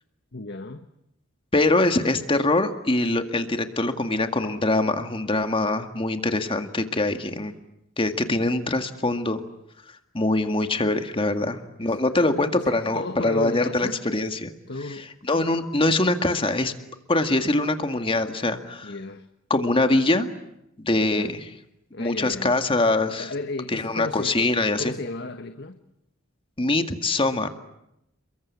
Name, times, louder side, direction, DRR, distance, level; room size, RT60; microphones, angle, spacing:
voice 1, 0.3-0.9 11.4-11.5 11.8-14.0 14.7-15.1 18.8-19.3 20.9-21.3 21.9-22.6 23.1-24.5 24.8-25.8, left 2 dB, 55° left, 8 dB, 1.5 m, -34 dB
voice 2, 1.5-7.5 8.0-9.4 10.1-14.5 15.3-16.7 17.1-18.9 19.5-20.3 20.8-21.4 22.0-23.3 23.7-24.9 26.6-27.5, left 2 dB, 25° left, 7 dB, 2.0 m, -23 dB
29.5 x 23.0 x 8.6 m, 0.83 s
head